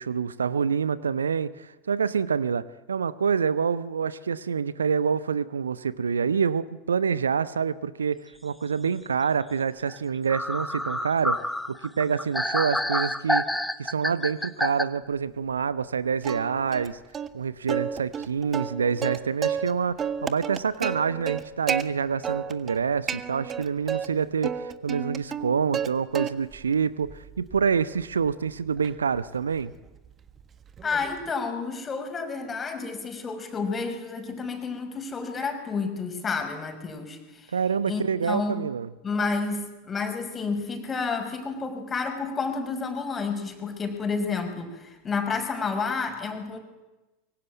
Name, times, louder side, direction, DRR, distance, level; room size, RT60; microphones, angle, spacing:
voice 1, 0.0-17.0 17.3-29.7 37.5-38.9, right 6 dB, 75° right, 17 dB, 0.9 m, -27 dB
sound 1, 9.9-10.0 10.3-14.8, left 1 dB, 5° left, 1.3 m, -28 dB
Plucked string instrument, 16.2-16.9 17.1-17.3 17.7-19.7 20.0-21.8 22.2-22.8 23.1-24.1 24.4-25.9 26.1-26.6 27.1-31.3, right 7 dB, 25° right, 1.5 m, -32 dB
voice 2, 30.8-37.5 37.9-38.7 39.0-46.6, left 4 dB, 20° left, 6 dB, 5.7 m, -30 dB
25.0 x 23.5 x 9.3 m, 1.1 s
figure-of-eight pair, 80°, 0 cm